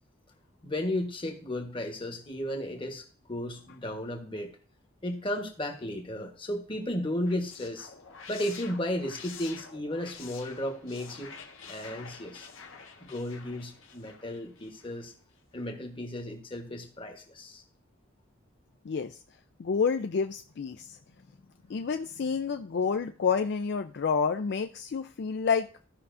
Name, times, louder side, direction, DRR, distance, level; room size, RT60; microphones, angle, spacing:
voice 1, 0.6-3.0 3.3-4.5 5.0-7.9 8.3-11.3 11.7-12.5 13.0-15.1 15.5-17.6, left 1 dB, 25° left, 4 dB, 1.2 m, -34 dB
sound 1, 7.0-15.1, left 5 dB, 80° left, 1.2 m, -48 dB
voice 2, 19.6-20.9 21.7-25.7, left 5 dB, 55° left, 7 dB, 0.4 m, -29 dB
15.0 x 5.5 x 2.6 m, 0.39 s
head